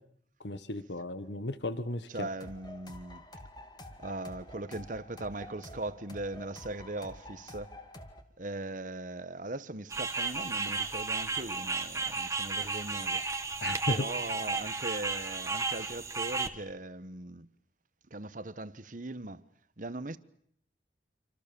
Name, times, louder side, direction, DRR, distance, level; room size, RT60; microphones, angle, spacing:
voice 1, 0.4-2.3 13.6-14.0, left 2 dB, 85° left, 1.5 m, -35 dB
voice 2, 2.1-3.2 4.0-7.7 8.4-13.2 13.9-17.5 18.1-19.4 19.8-20.2, right 2 dB, 50° right, 1.2 m, -39 dB
sound 1, 2.4-8.2, left 1 dB, 25° left, 2.4 m, -48 dB
sound 2, 9.9-16.5, right 4 dB, 15° right, 1.7 m, -33 dB
27.5 x 26.5 x 7.0 m
head